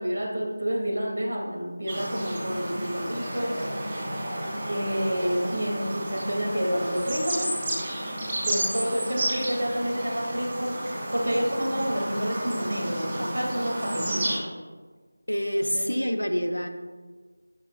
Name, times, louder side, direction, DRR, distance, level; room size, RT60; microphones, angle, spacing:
voice 1, 0.0-3.6 4.7-7.5 8.4-10.7 11.1-14.4 15.5-15.8, equal, 70° right, -1 dB, 2.4 m, -29 dB
sound 1, 1.9-14.4, right 1 dB, 25° right, 2.5 m, -32 dB
voice 2, 15.3-16.7, equal, 90° left, 7 dB, 0.8 m, -26 dB
13.0 x 6.3 x 2.4 m, 1.4 s
figure-of-eight pair, 165°, 0 cm